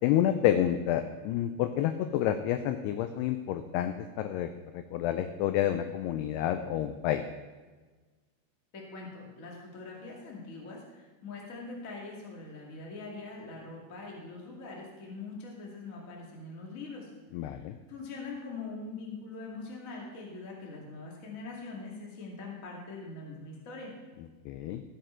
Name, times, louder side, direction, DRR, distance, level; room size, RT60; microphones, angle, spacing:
voice 1, 0.0-7.2 17.3-17.8 24.5-24.8, left 11 dB, 90° left, 9 dB, 2.3 m, -29 dB
voice 2, 8.7-17.1 17.4-23.9, left 3 dB, 70° left, -2 dB, 0.7 m, -43 dB
14.0 x 7.8 x 4.4 m, 1.3 s
omnidirectional pair, 5.2 m